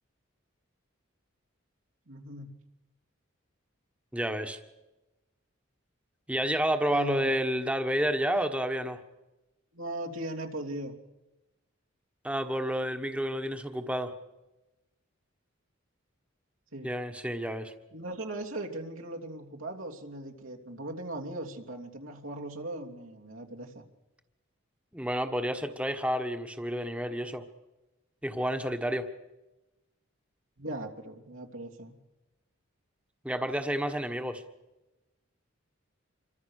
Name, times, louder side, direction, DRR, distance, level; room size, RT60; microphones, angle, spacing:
voice 1, 2.1-2.6 6.9-7.3 9.7-10.9 16.7-16.9 17.9-23.8 30.6-32.0, right 1 dB, 80° right, 1 dB, 3.1 m, -38 dB
voice 2, 4.1-4.6 6.3-9.0 12.2-14.1 16.8-17.7 24.9-27.4 28.2-29.1 33.2-34.4, equal, 5° right, 7 dB, 1.4 m, -30 dB
27.0 x 24.0 x 6.6 m, 1.0 s
head